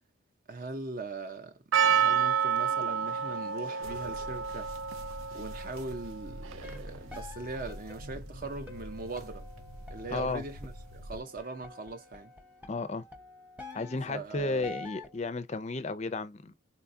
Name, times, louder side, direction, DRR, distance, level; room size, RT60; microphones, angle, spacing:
voice 1, 0.5-4.7 5.3-9.5 9.9-12.3 14.1-14.7, right 3 dB, 40° right, 0.7 m, -40 dB
Percussion, 1.7-7.0, right 7 dB, 70° right, 0.4 m, -29 dB
sound 1, 3.8-11.2, equal, 90° right, 1.0 m, -46 dB
sound 2, 6.5-15.2, left 3 dB, 10° right, 0.9 m, -48 dB
voice 2, 10.1-10.4 12.7-13.1 13.7-16.5, left 3 dB, 30° left, 0.4 m, -33 dB
4.1 x 2.3 x 2.6 m
head